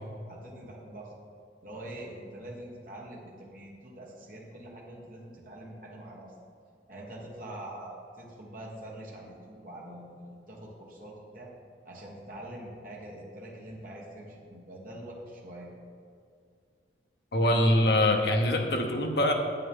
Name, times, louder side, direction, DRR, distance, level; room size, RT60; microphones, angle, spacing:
voice 1, 0.3-1.1 1.6-6.3 6.9-11.5 11.8-15.7, right 1 dB, 50° right, -3 dB, 1.5 m, -44 dB
voice 2, 17.3-19.3, left 1 dB, 60° left, 3 dB, 0.9 m, -24 dB
9.3 x 7.8 x 3.7 m, 2.3 s
head